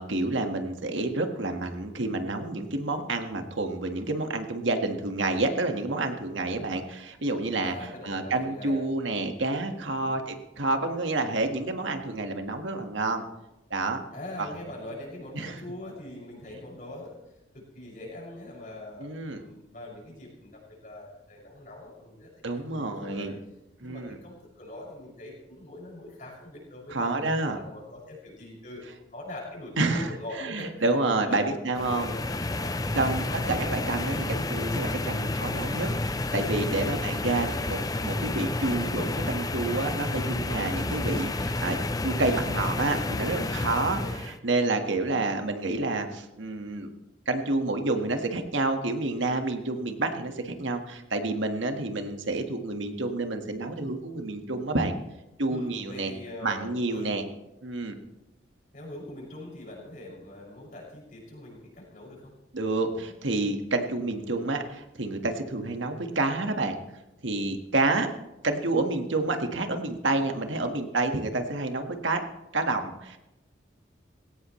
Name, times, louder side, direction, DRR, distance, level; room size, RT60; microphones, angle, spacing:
voice 1, 0.0-13.2 13.7-14.0 15.3-15.5 19.0-19.4 22.4-23.3 23.8-24.2 26.9-27.6 29.8-30.1 30.4-32.1 32.9-41.8 42.0-44.0 44.3-46.9 47.2-54.9 55.4-56.1 56.4-57.2 57.6-58.0 62.5-66.8 67.2-68.1 68.4-72.2 72.5-73.2, right 2 dB, 80° right, 5 dB, 1.7 m, -29 dB
voice 2, 7.6-8.8 10.0-10.2 14.1-17.2 17.5-23.3 23.8-28.8 29.1-30.7 31.1-32.2 32.6-33.1 36.7-37.6 43.7-44.1 55.5-57.2 58.7-62.3 67.7-68.0, left 1 dB, 45° left, -3 dB, 6.4 m, -42 dB
sound 1, 31.7-44.4, left 2 dB, 20° left, 0.5 m, -30 dB
20.0 x 17.0 x 3.2 m, 0.94 s
head